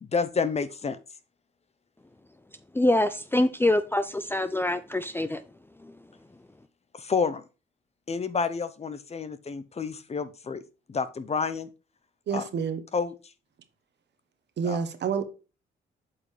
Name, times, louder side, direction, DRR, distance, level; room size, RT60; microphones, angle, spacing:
voice 1, 0.0-1.0 6.9-7.4 8.1-10.6 10.9-11.7 12.3-12.5 12.9-13.1 14.6-14.8, left 5 dB, 30° left, 0.8 m, -29 dB
voice 2, 2.7-5.4 5.8-5.9, left 1 dB, 10° left, 0.5 m, -25 dB
voice 3, 12.3-12.8 14.6-15.3, right 6 dB, 60° right, 1.2 m, -28 dB
8.3 x 5.1 x 3.3 m
cardioid pair, 90°, 20 cm